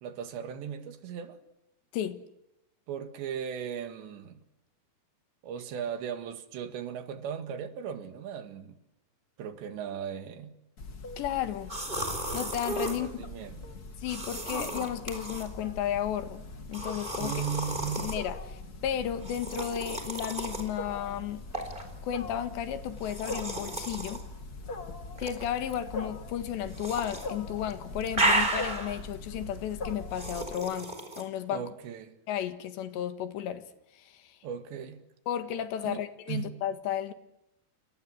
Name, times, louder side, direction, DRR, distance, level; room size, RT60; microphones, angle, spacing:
voice 1, 0.0-1.4 2.9-4.4 5.4-8.8 9.4-10.6 12.8-13.7 17.2-18.2 31.5-32.2 34.4-35.0 35.8-36.0 36.3-36.6, right 7 dB, 85° right, 4.2 m, -37 dB
Wild animals, 10.8-30.5, left 2 dB, 35° left, 1.5 m, -42 dB
voice 2, 11.2-11.7 12.3-13.1 14.0-16.4 16.7-17.3 18.0-21.4 22.0-24.2 25.2-31.6 32.3-33.6 33.9-34.4 35.3-37.1, left 10 dB, 85° left, 3.9 m, -33 dB
sound 1, 11.7-13.0 14.1-15.5 16.7-18.2 19.2-20.7 21.5-21.8 23.0-24.2 25.2-25.8 26.7-27.3 27.6-29.0 30.1-31.2, right 2 dB, 10° right, 4.2 m, -33 dB
29.5 x 25.0 x 8.0 m
omnidirectional pair, 5.0 m